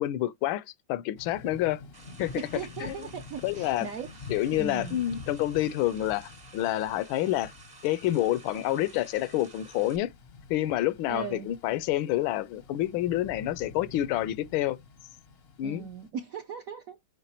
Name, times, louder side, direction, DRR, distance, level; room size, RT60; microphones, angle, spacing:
voice 1, 0.0-1.8 2.2-3.1 3.4-3.9 4.3-7.5 7.8-10.1 10.5-14.8 15.6-15.9, left 14 dB, 80° left, 1.4 m, -28 dB
Thunder / Rain, 1.2-16.1, left 4 dB, 55° left, 0.7 m, -47 dB
sound 1, 1.9-10.0, right 3 dB, 35° right, 0.7 m, -52 dB
voice 2, 2.3-5.0 11.1-11.5 15.6-17.0, right 6 dB, 65° right, 0.8 m, -38 dB
9.0 x 3.5 x 2.9 m
omnidirectional pair, 2.2 m